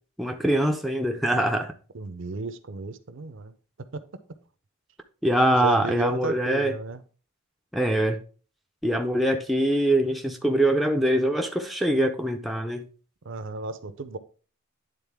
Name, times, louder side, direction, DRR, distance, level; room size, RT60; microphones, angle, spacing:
voice 1, 0.2-1.7 5.2-6.7 7.7-8.2 8.8-12.9, right 1 dB, ahead, 0.5 m, -23 dB
voice 2, 1.9-3.5 5.6-7.0 13.2-14.2, right 3 dB, 55° right, 0.5 m, -33 dB
9.9 x 3.9 x 3.4 m
head